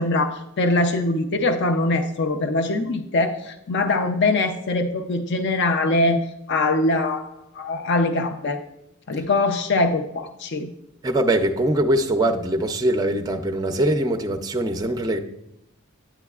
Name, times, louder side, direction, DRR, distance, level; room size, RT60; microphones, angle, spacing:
voice 1, 0.0-6.2 6.5-7.2 7.5-8.6 9.1-10.7, left 2 dB, 55° left, 7 dB, 0.5 m, -22 dB
voice 2, 11.0-15.2, right 1 dB, 15° right, 7 dB, 0.4 m, -22 dB
9.0 x 8.9 x 2.3 m, 0.83 s
head